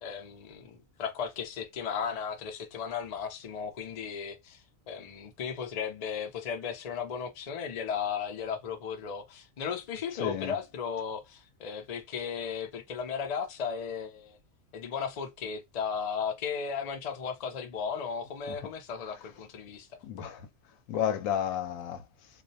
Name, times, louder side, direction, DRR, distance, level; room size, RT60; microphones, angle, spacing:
voice 1, 0.0-14.4 14.7-19.9, left 6 dB, 55° left, 0.4 m, -35 dB
voice 2, 10.2-10.6 18.5-18.6 20.0-20.5 20.9-22.0, left 9 dB, 80° left, 0.9 m, -31 dB
2.4 x 2.0 x 2.6 m
omnidirectional pair, 1.4 m